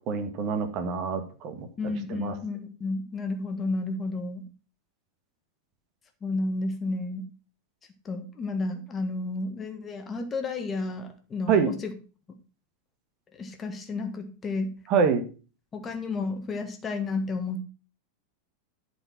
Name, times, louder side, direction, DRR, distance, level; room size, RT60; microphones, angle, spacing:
voice 1, 0.1-1.7 2.1-2.3 11.5-11.7 14.9-15.2, right 6 dB, 40° right, 8 dB, 1.6 m, -25 dB
voice 2, 1.8-4.5 6.2-7.3 8.0-11.9 13.4-14.7 15.7-17.6, left 3 dB, 20° left, 6 dB, 1.5 m, -31 dB
11.5 x 4.8 x 5.8 m, 0.36 s
figure-of-eight pair, 90°, 0 cm